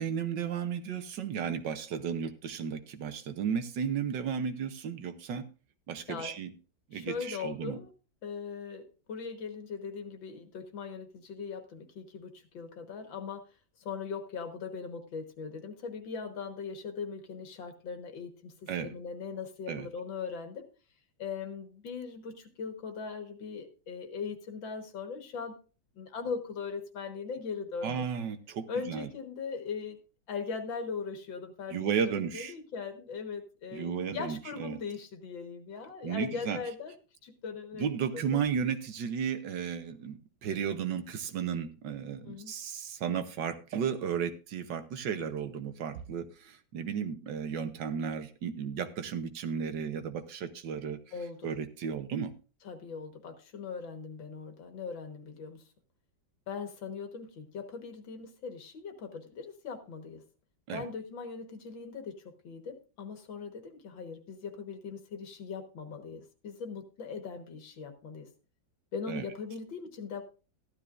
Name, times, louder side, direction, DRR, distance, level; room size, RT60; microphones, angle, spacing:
voice 1, 0.0-5.5 5.9-6.5 6.9-7.8 18.7-18.9 19.7-19.9 27.8-29.1 31.7-32.5 33.7-34.8 36.0-36.6 37.7-51.0 51.4-52.3 60.7-60.8 69.1-69.3, right 7 dB, 70° right, 9 dB, 1.6 m, -34 dB
voice 2, 6.9-7.9 8.2-13.4 13.8-20.6 21.2-25.6 26.0-28.1 28.7-30.0 30.3-36.9 37.2-37.9 38.1-38.4 42.3-42.6 51.1-51.5 52.6-55.6 56.5-60.2 60.7-68.3 68.9-70.2, left 5 dB, 85° left, 6 dB, 2.2 m, -40 dB
14.5 x 12.0 x 2.5 m, 0.33 s
omnidirectional pair, 2.0 m